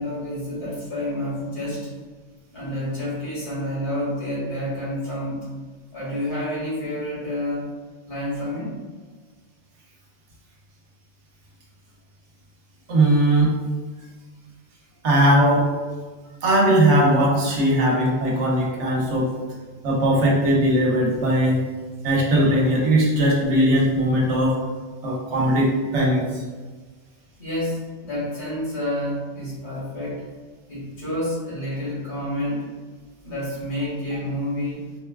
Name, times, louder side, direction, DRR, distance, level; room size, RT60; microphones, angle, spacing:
voice 1, 0.0-1.9 2.5-5.5 5.9-7.7 8.1-8.8 27.4-30.2 30.7-32.7 33.2-34.9, left 1 dB, 70° left, -9 dB, 2.1 m, -29 dB
voice 2, 12.9-13.5 15.0-15.7 16.4-19.3 19.8-21.6 22.0-24.5 25.0-26.4, right 1 dB, 65° right, -3 dB, 1.1 m, -19 dB
4.2 x 2.2 x 2.3 m, 1.4 s
omnidirectional pair, 1.3 m